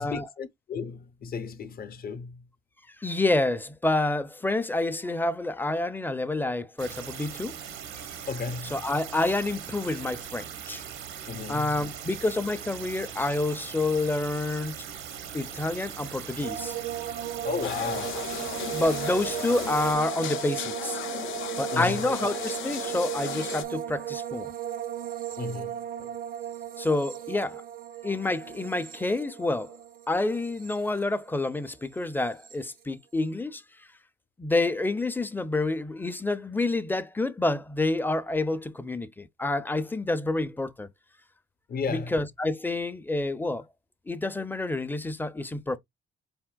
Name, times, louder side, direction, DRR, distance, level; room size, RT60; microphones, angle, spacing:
voice 1, 0.0-2.5 8.3-8.8 11.3-11.8 17.4-18.3 21.7-22.1 25.4-26.1 41.7-42.2, left 5 dB, 50° left, 0.7 m, -34 dB
voice 2, 3.0-7.6 7.9-8.1 8.7-10.8 11.5-14.8 15.3-16.8 18.7-21.0 21.6-24.5 26.8-27.6 28.0-29.8 30.1-33.6 34.4-40.9 41.9-43.6 44.1-45.8, left 2 dB, 10° left, 0.4 m, -28 dB
sound 1, 6.8-19.9, right 8 dB, 85° right, 0.8 m, -40 dB
sound 2, 16.4-31.7 31.9-32.6, right 11 dB, 45° right, 0.5 m, -36 dB
sound 3, 17.6-23.6, left 9 dB, 85° left, 0.6 m, -36 dB
4.2 x 3.5 x 2.2 m
cardioid pair, 90°, 20 cm